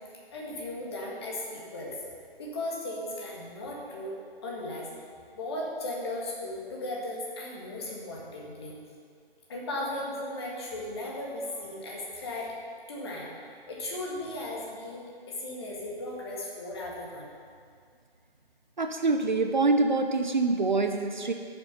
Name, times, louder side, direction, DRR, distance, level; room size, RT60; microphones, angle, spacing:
voice 1, 0.3-2.0 2.4-4.1 4.4-4.9 5.3-8.8 9.5-12.5 12.9-13.3 13.7-17.3, left 1 dB, 25° left, -3 dB, 1.7 m, -36 dB
voice 2, 18.8-21.3, right 3 dB, 50° right, 5 dB, 0.7 m, -25 dB
12.0 x 7.0 x 5.6 m, 2.2 s
figure-of-eight pair, 150°, 31 cm